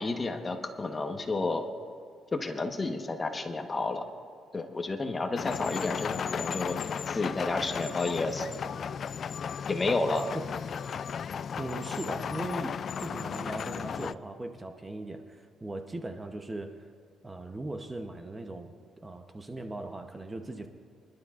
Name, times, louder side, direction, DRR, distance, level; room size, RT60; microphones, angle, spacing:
voice 1, 0.0-1.7 2.3-4.0 4.5-6.8 7.1-8.4 9.7-10.3, left 3 dB, 30° left, 5 dB, 1.2 m, -31 dB
sound 1, 5.4-14.1, left 7 dB, 55° left, 0.3 m, -35 dB
voice 2, 11.6-16.9 17.2-18.7 19.0-20.7, right 2 dB, 20° right, 6 dB, 0.9 m, -39 dB
25.0 x 12.0 x 2.5 m, 2.4 s
cardioid pair, 90°, 0 cm